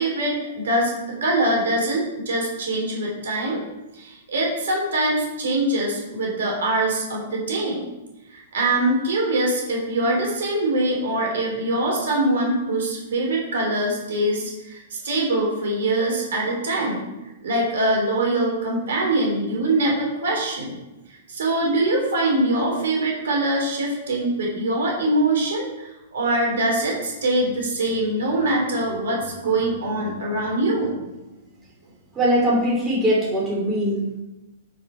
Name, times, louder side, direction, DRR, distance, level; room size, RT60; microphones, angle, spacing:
voice 1, 0.0-3.6 3.9-7.8 8.3-17.1 17.4-20.7 21.3-31.1, right 1 dB, 60° right, -2 dB, 3.1 m, -23 dB
voice 2, 32.1-34.2, equal, 15° right, -4 dB, 3.0 m, -21 dB
9.4 x 5.3 x 4.3 m, 0.99 s
figure-of-eight pair, 110°, 0 cm